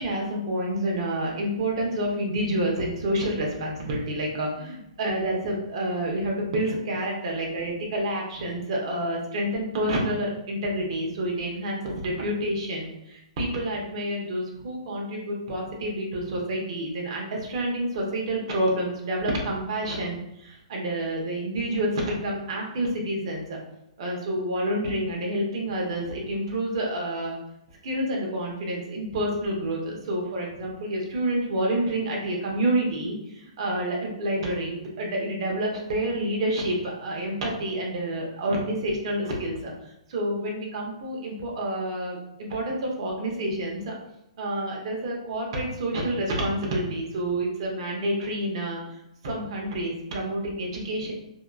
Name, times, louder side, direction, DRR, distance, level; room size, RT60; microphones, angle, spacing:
voice 1, 0.0-23.6 24.0-27.4 27.8-39.7 40.1-43.9 44.4-48.9 49.2-51.1, right 1 dB, 50° right, -1 dB, 0.8 m, -28 dB
2.7 x 2.3 x 2.3 m, 0.81 s
hypercardioid pair, 145°, 4 cm